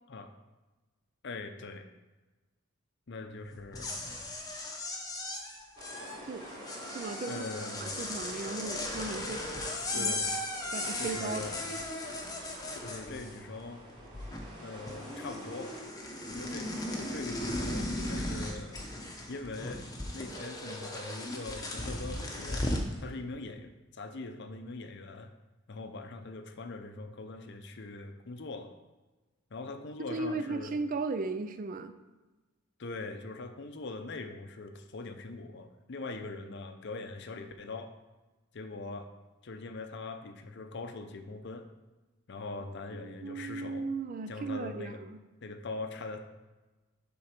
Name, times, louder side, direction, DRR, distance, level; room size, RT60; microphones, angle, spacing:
voice 1, 1.2-1.9 3.1-3.9 7.3-7.9 8.4-8.5 9.9-10.3 11.0-11.6 12.7-13.8 14.6-15.7 16.3-18.8 19.3-19.8 20.1-22.7 23.0-25.3 25.7-28.7 29.5-30.7 32.8-38.0 38.5-39.1 39.4-41.7 42.3-43.9 44.3-45.0 45.4-46.2, left 3 dB, 55° left, 8 dB, 0.6 m, -42 dB
sound 1, 3.6-13.6 13.9-14.6 14.9-22.9, left 1 dB, 15° left, 0.8 m, -37 dB
sound 2, 5.8-15.8, equal, 20° right, 2.3 m, -49 dB
voice 2, 6.9-7.5 7.8-9.5 9.9-10.2 10.7-11.4 30.1-31.9 42.9-45.2, right 3 dB, 40° right, 10 dB, 0.4 m, -36 dB
7.7 x 3.9 x 5.8 m, 1.2 s
head